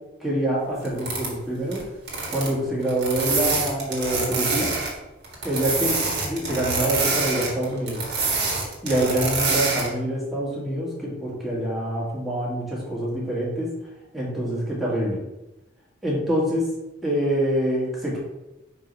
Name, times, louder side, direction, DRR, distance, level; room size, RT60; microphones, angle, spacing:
voice 1, 0.2-1.8 2.3-4.7 5.4-5.9 6.2-8.0 8.8-13.7 14.1-15.2 16.0-16.7 17.0-18.2, right 1 dB, ahead, -6 dB, 1.7 m, -25 dB
sound 1, 0.8-1.3 1.7-1.8 2.1-2.5 2.8-5.0 5.2-9.9, right 4 dB, 60° right, 1.8 m, -26 dB
4.8 x 3.8 x 5.2 m, 0.97 s
head